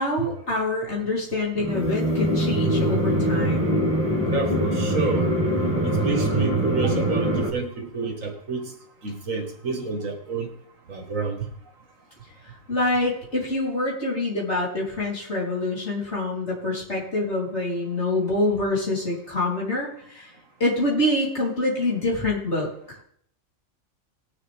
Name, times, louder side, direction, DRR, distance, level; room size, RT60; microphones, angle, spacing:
voice 1, 0.0-3.7 12.7-19.9 20.1-20.3 20.6-22.7, left 2 dB, 55° left, -4 dB, 3.9 m, -25 dB
sound 1, 1.6-7.5, right 1 dB, 10° right, 1.9 m, -23 dB
voice 2, 4.3-5.3 5.8-8.7 9.0-10.5 10.9-11.5, right 4 dB, 75° right, 4 dB, 2.2 m, -29 dB
19.5 x 7.1 x 3.5 m, 0.65 s
omnidirectional pair, 1.4 m